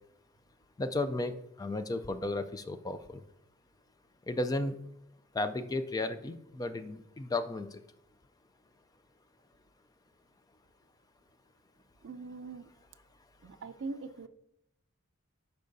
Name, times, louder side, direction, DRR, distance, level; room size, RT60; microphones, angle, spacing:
voice 1, 0.8-3.2 4.3-4.8 5.3-7.8, left 2 dB, 15° left, 10 dB, 0.3 m, -34 dB
voice 2, 12.0-12.7 13.4-14.3, right 3 dB, 55° right, 11 dB, 0.4 m, -41 dB
11.5 x 4.6 x 2.6 m, 0.81 s
head